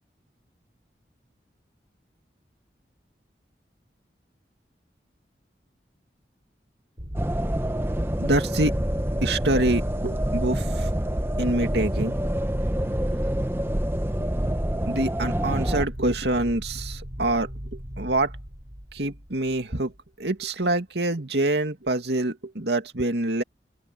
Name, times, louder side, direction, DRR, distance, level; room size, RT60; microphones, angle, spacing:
sound 1, 7.0-20.0, equal, 45° right, 3.8 m, -36 dB
sound 2, 7.1-15.9, right 1 dB, 15° right, 0.8 m, -27 dB
voice 1, 8.2-8.8 9.2-10.9 11.4-12.2 14.7-17.5 18.0-18.3 18.9-19.9 20.2-23.4, right 2 dB, 80° right, 2.4 m, -25 dB
open air
head